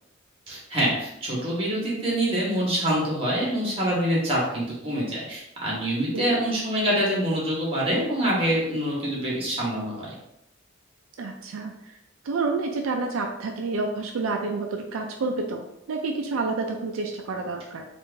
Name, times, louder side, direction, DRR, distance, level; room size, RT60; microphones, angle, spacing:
voice 1, 0.5-10.1, right 1 dB, 30° right, -5 dB, 1.2 m, -25 dB
voice 2, 11.2-12.0 12.2-17.9, right 3 dB, 80° right, 2 dB, 0.4 m, -29 dB
3.1 x 2.5 x 3.3 m, 0.81 s
head